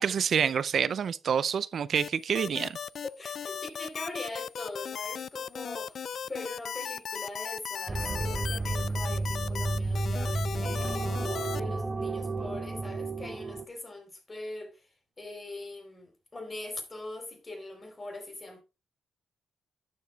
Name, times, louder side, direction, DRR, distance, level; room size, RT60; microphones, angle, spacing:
voice 1, 0.0-2.8, right 7 dB, 55° right, 0.4 m, -27 dB
sound 1, 1.9-11.6, left 8 dB, 55° left, 0.3 m, -37 dB
voice 2, 3.0-6.0 6.2-14.8 15.2-18.6, left 2 dB, 25° left, 3.7 m, -42 dB
sound 2, 7.9-13.7, right 3 dB, 25° right, 0.8 m, -32 dB
11.5 x 7.9 x 2.3 m
cardioid pair, 95°, 0 cm